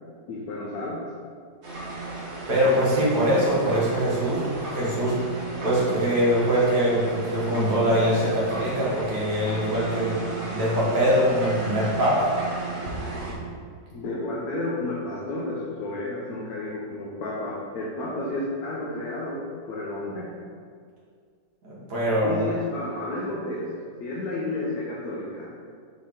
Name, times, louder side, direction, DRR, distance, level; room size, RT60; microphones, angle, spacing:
voice 1, 0.3-1.1 13.9-20.3 22.2-23.7 24.0-25.5, left 2 dB, 60° left, -5 dB, 1.3 m, -31 dB
sound 1, 1.6-13.3, right 3 dB, 45° right, 1.2 m, -34 dB
voice 2, 2.5-5.1 5.6-10.2 10.5-12.3 21.6-22.4, equal, 65° right, -7 dB, 2.2 m, -23 dB
6.3 x 4.3 x 3.7 m, 2.1 s
omnidirectional pair, 1.9 m